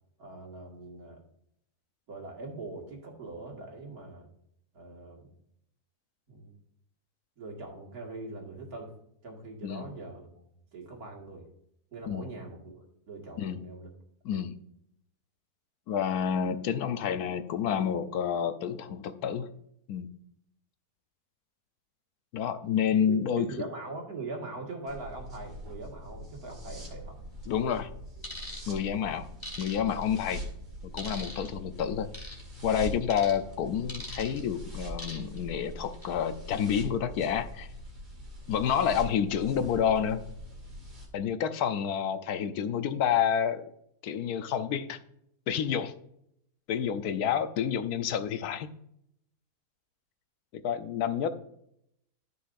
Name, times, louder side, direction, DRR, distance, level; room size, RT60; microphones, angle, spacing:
voice 1, 0.2-1.2 2.1-4.3 4.7-5.3 6.3-6.5 7.4-8.9 9.2-10.3 10.7-11.5 11.9-13.9 23.1-27.2, right 3 dB, 70° right, 0 dB, 2.4 m, -42 dB
voice 2, 15.9-19.5 19.9-20.1 22.3-23.5 27.5-27.9 28.7-29.3 29.6-30.4 30.9-32.1 32.6-37.7 38.5-40.2 41.1-43.7 44.0-45.0 45.5-45.9 46.7-48.7 50.6-51.3, left 8 dB, 80° left, 10 dB, 1.2 m, -29 dB
sound 1, 24.9-41.1, equal, 30° right, 2.4 m, -43 dB
sound 2, 28.2-28.6 29.4-30.1 31.0-31.5 32.1-32.4 33.1-33.4 33.9-34.4 35.0-35.4 35.8-36.1, left 1 dB, 15° left, 2.2 m, -41 dB
13.5 x 5.7 x 2.6 m, 0.72 s
omnidirectional pair, 1.6 m